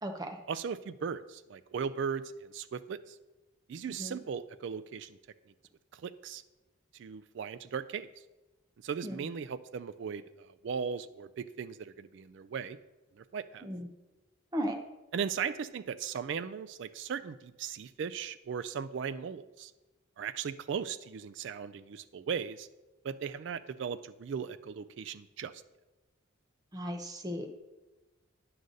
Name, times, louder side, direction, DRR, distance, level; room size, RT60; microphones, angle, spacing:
voice 1, 0.5-3.2 3.7-5.2 5.9-6.4 6.9-8.1 8.8-12.8 13.2-13.7 15.1-19.7 20.2-22.7 23.0-25.6, right 6 dB, 60° right, 13 dB, 0.3 m, -37 dB
voice 2, 26.7-27.5, equal, 20° right, 3 dB, 0.8 m, -36 dB
9.4 x 3.9 x 6.4 m, 1.1 s
head